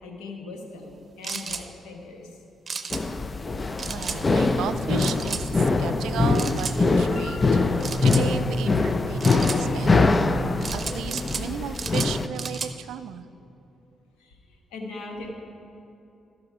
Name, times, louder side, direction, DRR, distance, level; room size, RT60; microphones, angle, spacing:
voice 1, 0.0-2.4 14.2-15.3, left 3 dB, 90° left, 1 dB, 1.4 m, -40 dB
sound 1, 1.2-1.6 2.7-3.0 3.8-4.2 5.0-5.4 6.3-6.8 7.8-8.2 9.2-9.6 10.6-11.5 11.7-12.7, right 5 dB, 45° right, 0.7 m, -33 dB
sound 2, 2.9-12.3, left 3 dB, 35° left, 0.5 m, -23 dB
sound 3, 3.8-9.8, equal, 55° left, 2.3 m, -39 dB
voice 2, 3.9-7.5 8.0-10.1 10.7-13.3, right 9 dB, 80° right, 13 dB, 0.3 m, -35 dB
14.0 x 6.1 x 4.8 m, 2.9 s
supercardioid pair, 65°, 0 cm